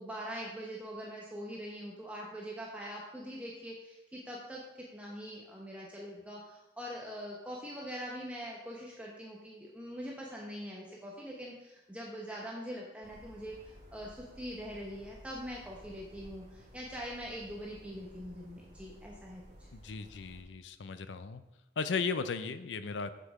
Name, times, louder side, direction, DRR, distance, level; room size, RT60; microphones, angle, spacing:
voice 1, 0.0-19.4, equal, 5° right, -3 dB, 0.9 m, -43 dB
sound 1, 13.0-20.4, equal, 40° right, 1.9 m, -55 dB
voice 2, 19.7-21.4 21.8-23.1, left 4 dB, 80° left, 11 dB, 0.5 m, -36 dB
7.6 x 6.7 x 4.8 m, 0.98 s
head